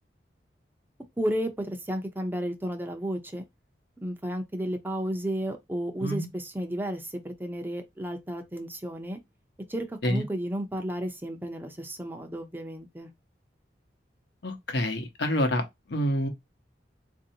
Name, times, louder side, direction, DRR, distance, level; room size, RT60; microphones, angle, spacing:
voice 1, 1.2-3.4 4.0-9.2 9.7-13.1, equal, 10° right, 0.5 m, -32 dB
voice 2, 14.4-16.3, equal, 75° left, 0.9 m, -27 dB
4.3 x 2.6 x 2.8 m
head